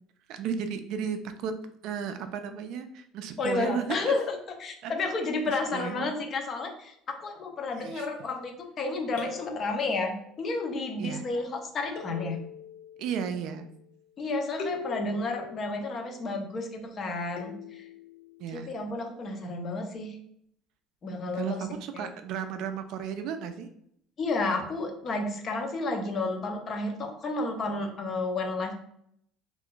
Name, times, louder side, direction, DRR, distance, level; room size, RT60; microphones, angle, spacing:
voice 1, 0.3-1.5 1.8-4.1 4.8-4.9 5.7-6.1 7.8-8.1 11.0-11.3 13.0-13.7 14.8-14.9 18.4-18.7 21.3-23.7, right 7 dB, 55° right, 8 dB, 0.3 m, -34 dB
voice 2, 3.4-6.9 7.2-12.4 14.2-17.9 18.5-20.2 21.0-21.7 21.9-22.1 24.2-28.7, left 3 dB, 30° left, 4 dB, 0.5 m, -31 dB
sound 1, 9.2-10.7 12.0-14.0 14.6-16.8 17.4-18.7, left 5 dB, 85° left, 0.5 m, -43 dB
2.5 x 2.3 x 3.6 m, 0.70 s
cardioid pair, 155°, 0 cm